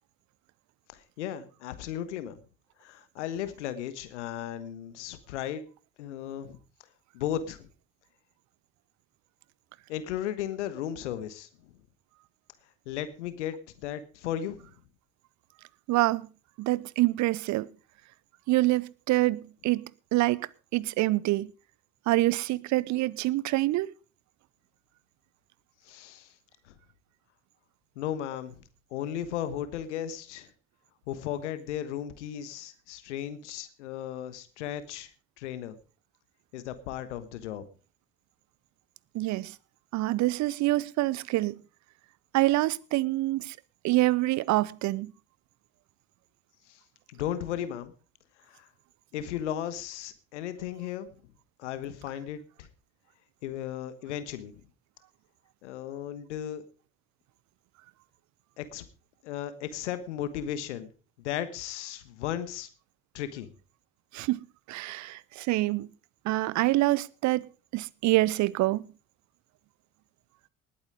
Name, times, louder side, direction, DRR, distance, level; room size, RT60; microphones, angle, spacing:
voice 1, 0.9-2.4 2.8-5.6 6.0-6.6 7.1-7.7 9.9-11.7 12.9-14.7 25.8-26.3 26.7-26.8 28.0-28.6 28.9-30.5 31.1-35.1 35.4-35.8 36.5-37.6 46.7-46.8 47.1-47.9 48.5-48.7 49.1-51.1 51.6-52.7 53.4-54.6 55.6-56.6 58.6-58.8 59.2-60.9 61.2-62.7 63.1-63.5, left 10 dB, 75° left, 1.4 m, -35 dB
voice 2, 15.9-16.3 16.6-17.7 18.5-19.8 20.1-21.5 22.1-23.9 39.1-39.5 39.9-41.6 42.3-43.5 43.8-45.1 64.1-65.9 66.3-67.4 67.7-68.8, right 18 dB, 55° right, 0.7 m, -26 dB
19.0 x 8.7 x 5.1 m
figure-of-eight pair, 50°, 35 cm